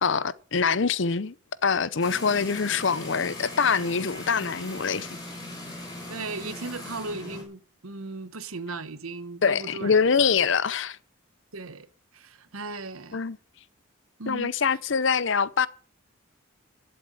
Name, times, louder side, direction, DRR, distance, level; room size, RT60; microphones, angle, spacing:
voice 1, 0.0-1.3 1.6-5.1 9.4-11.0 13.1-13.4 14.3-15.7, left 5 dB, 60° left, 0.7 m, -24 dB
sound 1, 2.0-7.4, left 2 dB, 20° left, 4.6 m, -39 dB
voice 2, 6.1-10.3 11.5-13.2 14.2-14.8, right 3 dB, 90° right, 1.1 m, -37 dB
11.5 x 7.9 x 9.0 m
head